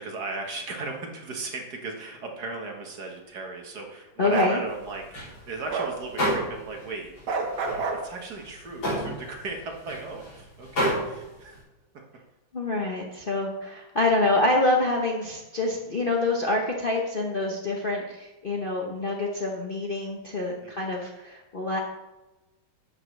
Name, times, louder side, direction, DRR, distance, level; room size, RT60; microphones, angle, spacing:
voice 1, 0.0-5.0 5.4-7.1 7.9-11.6 20.6-20.7, right 3 dB, 55° right, 2 dB, 1.8 m, -37 dB
voice 2, 4.2-4.6 12.5-21.8, left 2 dB, 40° left, -1 dB, 0.8 m, -26 dB
Bark, 4.3-4.6 5.7-5.9 7.3-8.0, right 4 dB, 85° right, 2.0 m, -27 dB
sound 1, 4.7-6.9 7.2-11.6, equal, 90° left, 4.4 m, -31 dB
11.0 x 8.3 x 3.2 m, 1.0 s
omnidirectional pair, 2.2 m